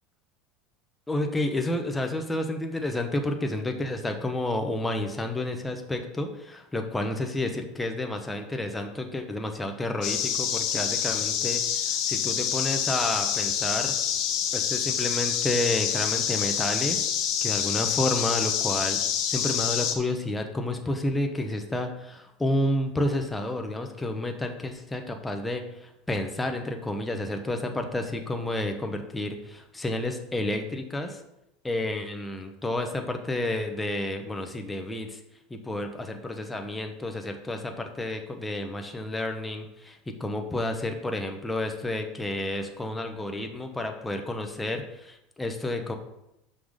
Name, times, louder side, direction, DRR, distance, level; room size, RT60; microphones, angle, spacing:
voice 1, 1.1-13.9 14.5-17.0 17.4-19.0 19.3-31.2 31.6-35.2 35.5-45.9, left 1 dB, 10° left, 4 dB, 0.9 m, -30 dB
sound 1, 10.0-19.9, left 9 dB, 50° left, 1.1 m, -27 dB
6.0 x 5.7 x 5.1 m, 0.86 s
supercardioid pair, 135°, 0 cm